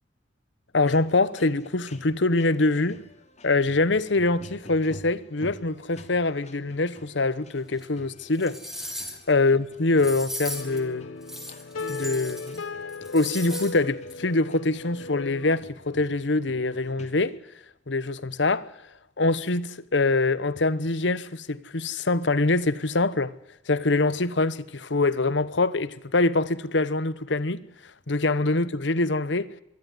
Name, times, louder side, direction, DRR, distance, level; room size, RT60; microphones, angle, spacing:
voice 1, 0.7-3.0 3.4-8.6 9.3-11.1 11.9-12.6 13.1-17.4 17.9-18.7 19.2-23.3 23.7-27.6 28.1-29.5, left 2 dB, 65° left, 1.1 m, -24 dB
sound 1, 0.8-17.4, left 1 dB, 35° left, 2.7 m, -50 dB
sound 2, 7.8-7.9 8.3-9.3 10.0-10.8 11.2-12.6 12.9-13.8 14.1-14.2, equal, ahead, 3.4 m, -37 dB
sound 3, 10.5-15.6, left 3 dB, 85° left, 1.1 m, -37 dB
23.5 x 13.0 x 9.5 m
head